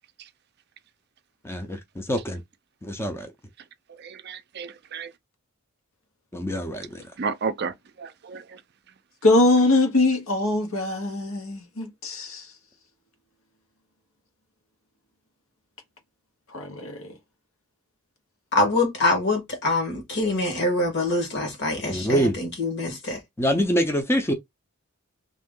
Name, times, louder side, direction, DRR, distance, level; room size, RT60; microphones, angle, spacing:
voice 1, 1.4-2.4 2.8-3.3 6.3-7.0 21.9-22.4 23.4-24.3, equal, 10° left, 0.5 m, -25 dB
voice 2, 3.9-5.1 7.2-8.6, right 5 dB, 50° right, 0.5 m, -33 dB
voice 3, 9.2-12.5 16.5-17.1, left 2 dB, 80° left, 1.1 m, -22 dB
voice 4, 18.5-23.2, left 2 dB, 55° left, 1.4 m, -24 dB
3.0 x 2.6 x 3.7 m
head